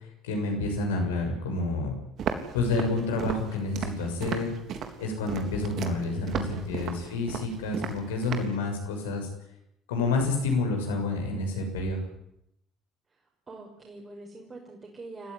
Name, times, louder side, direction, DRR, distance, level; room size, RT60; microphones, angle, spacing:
voice 1, 0.2-1.9 2.5-4.5 5.0-9.3 9.9-12.0, left 3 dB, 75° left, 3 dB, 6.6 m, -29 dB
Walk footsteps, 2.2-8.6, right 7 dB, 55° right, 3.5 m, -35 dB
voice 2, 6.1-6.9 13.5-15.3, right 2 dB, 35° right, 0 dB, 6.2 m, -44 dB
30.0 x 15.5 x 10.0 m, 0.80 s
figure-of-eight pair, 50°, 0 cm